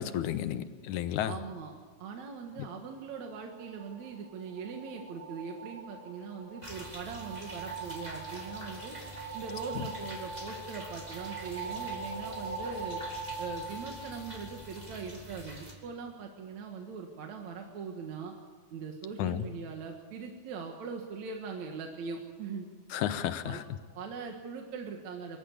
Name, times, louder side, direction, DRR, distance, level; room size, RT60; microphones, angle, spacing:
voice 1, 0.0-1.3 2.6-2.7 9.8-9.9 19.2-19.5 22.9-23.6, left 11 dB, 85° left, 12 dB, 2.4 m, -32 dB
voice 2, 1.2-1.7 2.0-9.0 9.3-13.0 13.4-18.3 18.7-22.7 23.4-23.6 24.0-25.4, right 5 dB, 70° right, 2 dB, 2.9 m, -41 dB
sound 1, 3.2-14.9, right 3 dB, 35° right, 4.4 m, -42 dB
sound 2, 6.6-15.7, right 1 dB, 15° right, 3.5 m, -46 dB
24.5 x 14.5 x 8.5 m, 1.5 s
omnidirectional pair, 3.4 m